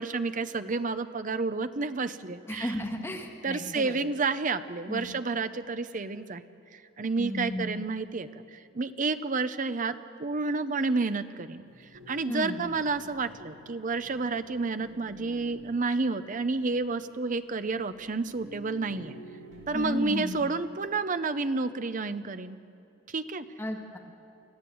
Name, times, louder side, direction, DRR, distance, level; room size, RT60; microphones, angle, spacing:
voice 1, 0.0-2.9 3.4-6.4 6.7-11.6 12.1-19.1 19.7-22.6 23.1-23.5, right 3 dB, 40° right, 11 dB, 0.7 m, -30 dB
voice 2, 2.5-4.0 4.9-5.1 7.2-7.7 12.3-12.6 19.7-20.5 23.6-24.0, equal, 15° left, 1 dB, 1.7 m, -34 dB
sound 1, 11.6-20.0, equal, 70° right, 4.7 m, -51 dB
25.5 x 15.0 x 7.8 m, 2.8 s
head